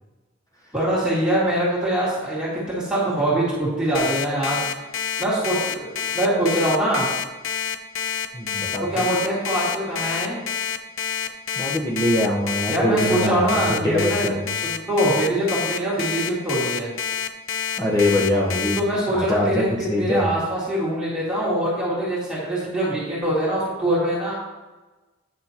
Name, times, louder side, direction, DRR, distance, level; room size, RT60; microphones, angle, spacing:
voice 1, 0.7-4.8 5.2-7.1 8.9-10.4 12.7-14.4 14.6-16.9 18.8-24.3, right 1 dB, 5° right, -9 dB, 2.1 m, -23 dB
Alarm, 3.9-18.8, left 8 dB, 80° left, 0.5 m, -27 dB
voice 2, 8.3-9.0 11.6-14.5 17.8-18.8 19.1-19.6 19.9-20.3, left 1 dB, 15° left, -3 dB, 0.9 m, -23 dB
9.3 x 6.1 x 2.9 m, 1.2 s
head